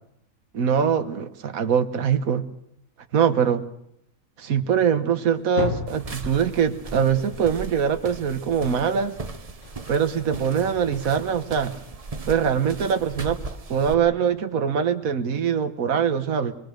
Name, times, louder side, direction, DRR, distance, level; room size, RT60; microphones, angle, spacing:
voice 1, 0.5-2.5 3.1-3.6 4.4-9.1 9.9-11.7 12.3-13.4 13.7-16.5, right 7 dB, 80° right, 8 dB, 1.6 m, -23 dB
sound 1, 5.2-8.5 9.6-11.5, left 5 dB, 60° left, 1.8 m, -36 dB
sound 2, 5.9-13.9, right 3 dB, 30° right, 1.0 m, -38 dB
26.0 x 21.5 x 6.5 m, 0.77 s
omnidirectional pair, 1.4 m